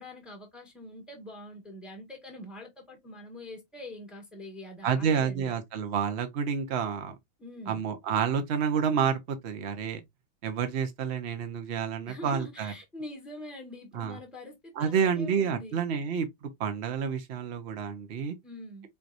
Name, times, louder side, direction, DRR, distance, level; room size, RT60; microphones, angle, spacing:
voice 1, 0.0-5.6 7.4-7.8 12.1-15.8 18.4-18.9, left 1 dB, ahead, 1.3 m, -44 dB
voice 2, 4.8-7.2 7.7-10.0 10.4-12.7 13.9-14.2 14.8-18.4, right 7 dB, 50° right, 0.8 m, -29 dB
4.6 x 3.9 x 2.6 m
omnidirectional pair, 2.3 m